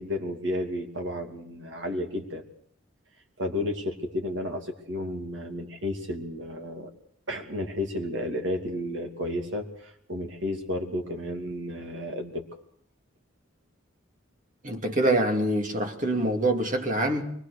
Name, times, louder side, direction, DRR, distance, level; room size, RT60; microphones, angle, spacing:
voice 1, 0.0-2.4 3.4-6.9 7.3-12.5, left 1 dB, 60° right, 2.9 m, -32 dB
voice 2, 14.6-17.2, right 1 dB, 40° right, 2.5 m, -25 dB
24.0 x 19.5 x 6.7 m
head